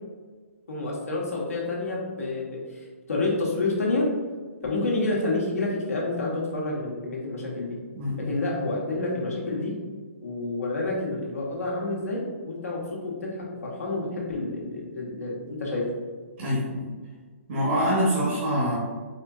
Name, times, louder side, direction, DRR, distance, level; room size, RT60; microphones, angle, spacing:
voice 1, 0.7-4.0 4.6-7.8 8.3-9.7 10.2-12.8 13.0-15.8, left 2 dB, 80° left, -3 dB, 1.1 m, -29 dB
voice 2, 16.4-16.8 17.5-18.8, equal, 45° right, -6 dB, 0.8 m, -24 dB
4.1 x 2.6 x 2.4 m, 1.5 s
hypercardioid pair, 140°, 8 cm